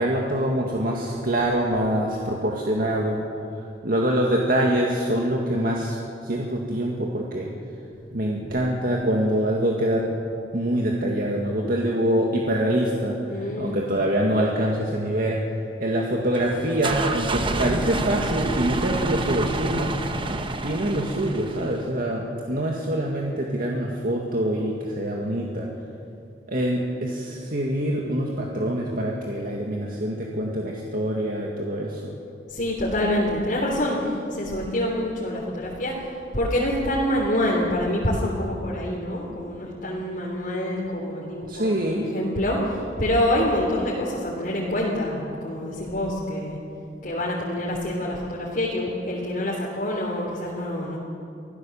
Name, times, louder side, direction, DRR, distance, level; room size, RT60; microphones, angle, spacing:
voice 1, 0.0-3.2 3.8-6.0 6.2-7.5 8.1-10.0 10.5-15.4 15.8-19.9 20.6-25.7 26.5-32.2 41.5-42.1, right 1 dB, 55° right, -1 dB, 2.0 m, -25 dB
voice 2, 13.3-13.9 32.5-35.9 36.3-41.7 42.0-46.6 47.0-51.0, left 1 dB, 55° left, -4 dB, 3.2 m, -26 dB
sound 1, 16.3-21.9, right 2 dB, 30° right, 1.1 m, -28 dB
25.0 x 16.0 x 7.2 m, 2.6 s
head